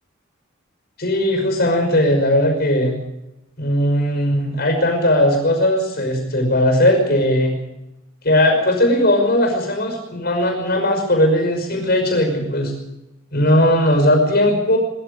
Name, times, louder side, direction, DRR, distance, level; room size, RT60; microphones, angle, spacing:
voice 1, 1.0-3.0 3.6-7.6 8.2-12.7 13.3-14.8, left 1 dB, 50° left, 3 dB, 5.6 m, -18 dB
20.5 x 15.0 x 8.5 m, 0.93 s
head